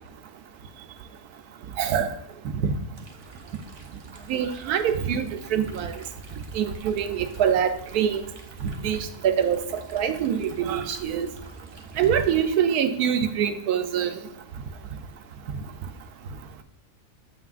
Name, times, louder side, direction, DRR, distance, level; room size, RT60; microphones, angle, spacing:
voice 1, 1.8-2.1 2.6-2.7 4.3-5.9 6.5-8.2 8.8-9.6 9.9-11.3 12.0-14.2, right 8 dB, 80° right, 8 dB, 1.1 m, -24 dB
sound 1, 2.9-12.6, right 2 dB, 40° right, 0.8 m, -46 dB
8.1 x 5.9 x 2.4 m, 0.80 s
omnidirectional pair, 1.6 m